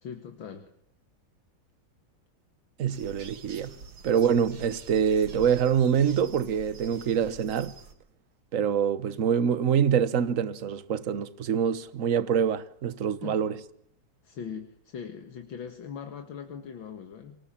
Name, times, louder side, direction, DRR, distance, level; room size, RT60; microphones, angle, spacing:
voice 1, 0.0-0.7 13.2-13.4 14.2-17.4, left 7 dB, 70° left, 2.4 m, -40 dB
voice 2, 2.8-3.7 4.0-7.7 8.5-13.6, right 8 dB, 45° right, 1.4 m, -25 dB
sound 1, 2.9-7.9, right 5 dB, 70° right, 2.6 m, -47 dB
26.0 x 20.0 x 8.8 m
omnidirectional pair, 2.2 m